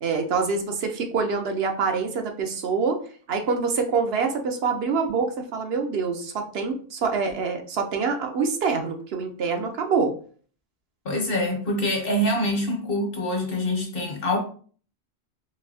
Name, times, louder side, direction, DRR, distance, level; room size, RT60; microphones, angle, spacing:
voice 1, 0.0-3.0 3.3-10.1, right 5 dB, 70° right, 0.9 m, -25 dB
voice 2, 11.0-14.4, left 1 dB, 60° left, 1.1 m, -25 dB
4.0 x 2.6 x 2.7 m
omnidirectional pair, 1.1 m